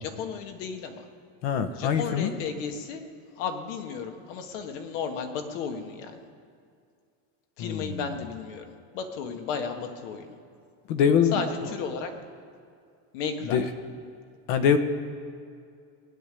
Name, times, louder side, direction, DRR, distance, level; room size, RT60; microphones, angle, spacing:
voice 1, 0.0-1.1 1.7-3.0 3.4-6.2 7.6-10.4 11.3-12.1 13.1-13.6, left 6 dB, 85° left, 5 dB, 1.9 m, -34 dB
voice 2, 1.4-2.3 7.6-8.0 10.9-11.4 13.5-13.7 14.5-14.8, left 7 dB, 65° left, 9 dB, 1.3 m, -23 dB
18.5 x 7.0 x 10.0 m, 2.3 s
cardioid pair, 165°, 37 cm